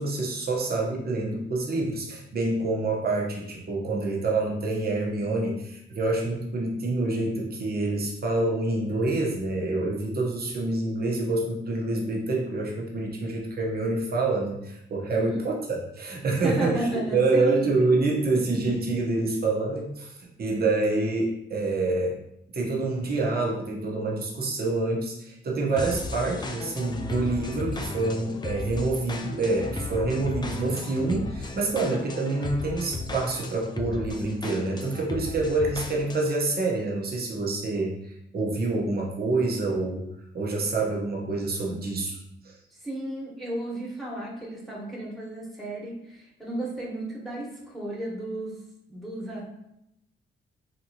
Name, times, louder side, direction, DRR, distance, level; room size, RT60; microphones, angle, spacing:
voice 1, 0.0-22.2 22.5-40.1 40.3-42.2 42.4-42.5, right 2 dB, 45° right, -2 dB, 0.9 m, -27 dB
voice 2, 16.4-17.8 42.8-48.5 48.9-49.5, right 1 dB, ahead, -5 dB, 1.3 m, -33 dB
sound 1, 25.8-36.4, left 3 dB, 20° left, 0.4 m, -35 dB
3.3 x 2.8 x 2.9 m, 0.82 s
cardioid pair, 70°, 21 cm